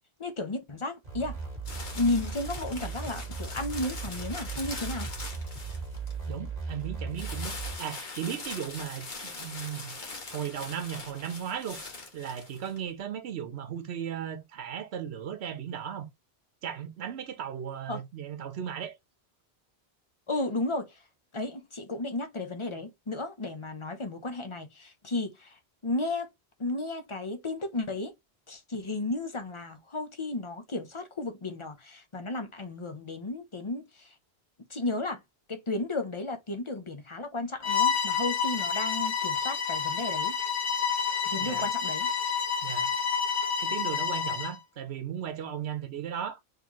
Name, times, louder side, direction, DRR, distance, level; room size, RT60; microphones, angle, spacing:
voice 1, 0.2-1.4 1.9-5.1 17.9-18.0 20.3-21.0 21.3-26.3 26.6-28.1 28.5-34.1 34.7-35.2 35.5-40.3 41.2-42.1, left 2 dB, 30° left, 0.8 m, -33 dB
sound 1, 1.0-7.8, right 5 dB, 40° right, 1.5 m, -37 dB
sound 2, 1.7-6.2 7.1-12.8, left 3 dB, 50° left, 1.3 m, -42 dB
voice 2, 6.3-10.0 10.3-11.8 12.1-16.1 16.6-18.9 41.4-41.7 42.6-42.9 43.6-46.4, right 9 dB, 80° right, 1.0 m, -36 dB
Bowed string instrument, 37.6-44.6, left 6 dB, 65° left, 1.1 m, -29 dB
3.9 x 3.2 x 2.9 m
omnidirectional pair, 1.1 m